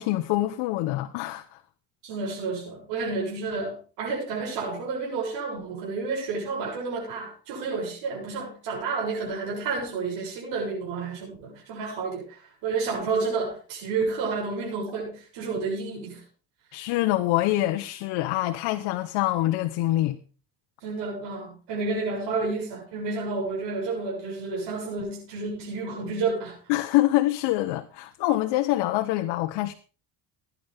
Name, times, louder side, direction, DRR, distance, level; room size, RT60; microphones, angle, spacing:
voice 1, 0.0-1.6 16.7-20.2 26.7-29.7, left 16 dB, 85° left, 1.2 m, -25 dB
voice 2, 2.0-16.2 20.8-26.6, right 4 dB, 75° right, 7.5 m, -30 dB
18.0 x 11.0 x 3.6 m
cardioid pair, 125°, 43 cm